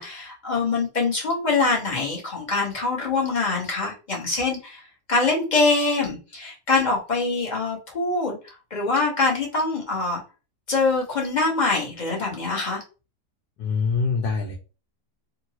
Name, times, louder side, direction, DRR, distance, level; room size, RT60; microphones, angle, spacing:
voice 1, 0.0-10.2 10.7-12.8, left 3 dB, 35° left, -2 dB, 0.9 m, -24 dB
voice 2, 13.6-14.6, left 5 dB, 90° left, 0 dB, 1.2 m, -24 dB
2.8 x 2.6 x 2.8 m, 0.33 s
omnidirectional pair, 1.8 m